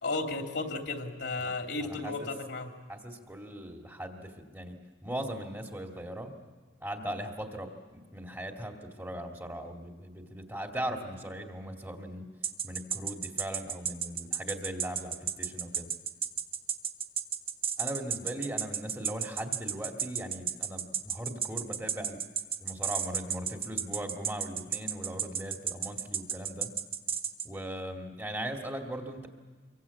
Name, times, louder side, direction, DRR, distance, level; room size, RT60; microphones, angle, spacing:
voice 1, 0.0-2.7, left 3 dB, 70° left, 3 dB, 3.0 m, -34 dB
voice 2, 1.8-2.3 2.9-6.4 6.8-12.3 12.6-15.9 17.8-22.2 22.6-26.7 27.4-29.3, right 1 dB, 15° right, 2 dB, 2.4 m, -39 dB
sound 1, 12.4-27.5, right 7 dB, 30° right, 1.1 m, -32 dB
26.0 x 23.5 x 8.4 m, 1.4 s
head